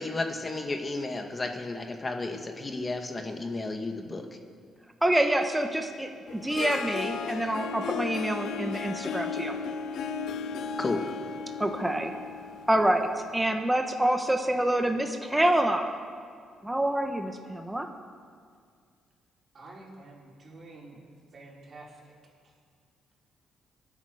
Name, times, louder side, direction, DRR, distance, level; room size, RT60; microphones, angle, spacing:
voice 1, 0.0-4.2 10.8-11.0, left 2 dB, 25° left, 4 dB, 1.5 m, -33 dB
voice 2, 5.0-9.6 11.6-12.1 12.7-15.9 16.6-17.9, right 1 dB, 10° right, 4 dB, 1.2 m, -27 dB
Harp, 6.3-13.4, left 6 dB, 75° left, 0.7 m, -35 dB
voice 3, 19.5-21.0 21.3-22.1, right 2 dB, 45° right, -3 dB, 4.2 m, -48 dB
26.0 x 9.0 x 5.0 m, 2.1 s
cardioid pair, 90°, 0 cm